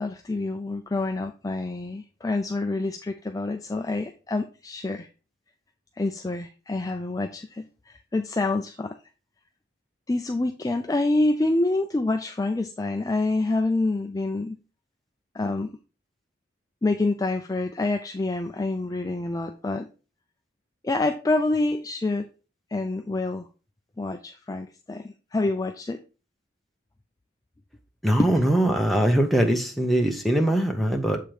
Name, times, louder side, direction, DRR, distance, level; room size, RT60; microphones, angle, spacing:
voice 1, 0.0-5.1 6.0-9.0 10.1-14.6 15.3-15.7 16.8-19.9 20.8-22.3 22.7-23.5 24.0-26.0 28.2-28.3, left 2 dB, 20° left, 0.3 m, -27 dB
voice 2, 28.0-31.2, right 1 dB, ahead, 0.7 m, -22 dB
7.5 x 3.4 x 4.5 m
head